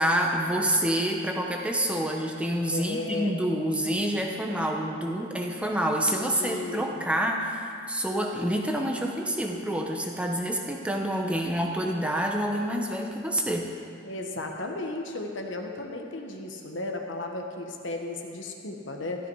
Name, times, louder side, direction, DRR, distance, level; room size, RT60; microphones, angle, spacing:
voice 1, 0.0-13.7, right 1 dB, 5° right, 0 dB, 1.1 m, -27 dB
voice 2, 2.7-3.3 6.3-7.0 14.0-19.3, left 2 dB, 65° left, 2 dB, 1.4 m, -35 dB
14.5 x 13.0 x 4.8 m, 2.3 s
head